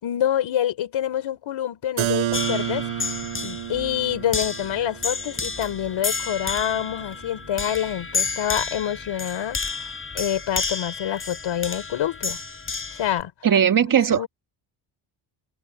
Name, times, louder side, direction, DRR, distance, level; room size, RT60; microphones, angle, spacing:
voice 1, 0.0-2.9 3.4-9.6 10.1-12.4 13.0-13.3 13.8-14.3, left 10 dB, 70° left, 4.3 m, -26 dB
Keyboard (musical), 2.0-7.6, right 12 dB, 80° right, 4.3 m, -31 dB
sound 1, 2.3-13.2, left 4 dB, 25° left, 7.0 m, -31 dB
voice 2, 13.4-14.3, right 8 dB, 40° right, 1.8 m, -18 dB
cardioid pair, 135°, 48 cm